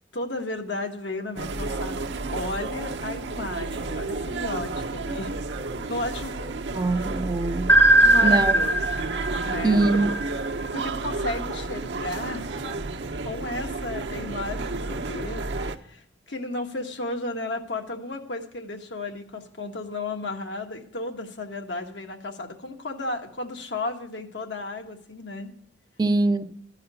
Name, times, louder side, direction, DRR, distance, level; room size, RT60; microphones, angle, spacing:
voice 1, 0.1-2.0 2.3-5.3 5.9-6.3 6.9-7.1 8.0-8.8 9.4-10.0 10.7-12.5 13.2-25.5, left 2 dB, 80° left, 1.4 m, -33 dB
sound 1, 1.4-15.8, right 3 dB, 75° right, 0.8 m, -31 dB
voice 2, 6.7-7.8 8.2-8.6 9.6-10.1 26.0-26.5, right 2 dB, 25° right, 0.4 m, -23 dB
sound 2, 7.7-10.6, right 1 dB, 15° left, 0.6 m, -19 dB
12.5 x 4.9 x 8.2 m
head